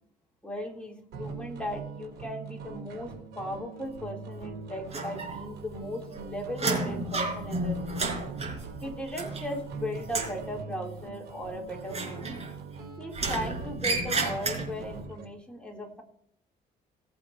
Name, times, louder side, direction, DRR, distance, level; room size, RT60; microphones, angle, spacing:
voice 1, 0.4-8.0 8.8-12.3 13.0-16.0, equal, 5° left, -1 dB, 3.3 m, -37 dB
sound 1, 1.1-15.2, right 4 dB, 75° right, 4.3 m, -42 dB
sound 2, 4.9-5.7 6.0-9.7 10.0-10.4 11.9-12.7 13.1-14.9, right 3 dB, 40° right, 4.5 m, -32 dB
19.0 x 8.4 x 2.9 m, 0.68 s
cardioid pair, 110°, 17 cm